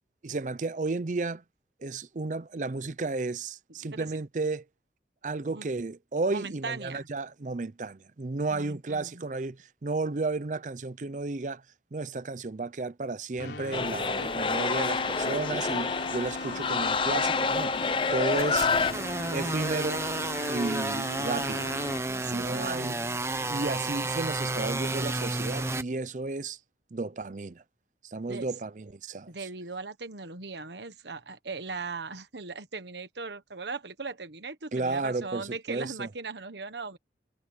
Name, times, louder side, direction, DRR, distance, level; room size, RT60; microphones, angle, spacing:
voice 1, 0.2-1.4 1.8-4.6 5.2-11.6 11.9-17.7 18.1-18.7 19.3-20.1 20.5-21.7 22.3-23.0 23.5-26.6 26.9-27.6 28.0-29.3 34.7-36.1, right 3 dB, 45° right, 0.5 m, -33 dB
voice 2, 3.8-4.2 5.5-5.7 6.3-7.1 8.5-9.2 22.1-23.2 28.3-28.5 29.3-37.0, right 4 dB, 80° right, 1.4 m, -39 dB
Keyboard (musical), 13.4-22.4, left 3 dB, 85° left, 3.7 m, -39 dB
sound 1, 13.7-18.9, left 4 dB, 30° left, 0.7 m, -28 dB
sound 2, 18.4-25.8, right 2 dB, 15° right, 0.9 m, -31 dB
head